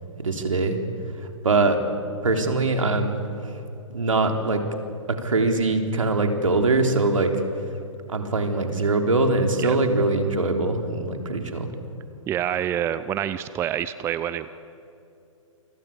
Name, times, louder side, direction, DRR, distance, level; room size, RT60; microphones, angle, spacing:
voice 1, 0.2-0.8 1.2-1.8 2.2-3.2 3.9-4.6 5.2-7.3 8.1-11.7, right 3 dB, 70° right, 4 dB, 3.9 m, -22 dB
voice 2, 12.3-14.5, right 10 dB, 15° right, 14 dB, 0.6 m, -27 dB
28.5 x 24.5 x 8.6 m, 2.7 s
figure-of-eight pair, 120°, 17 cm